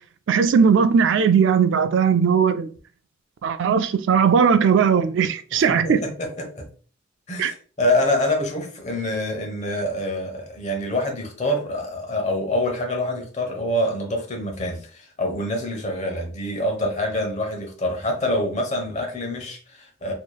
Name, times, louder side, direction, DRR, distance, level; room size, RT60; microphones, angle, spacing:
voice 1, 0.3-2.7 3.4-6.0 7.4-7.5, right 6 dB, 65° right, 0.3 m, -18 dB
voice 2, 5.5-6.1 7.3-20.1, left 1 dB, 35° left, 1.0 m, -26 dB
4.6 x 3.0 x 2.3 m
head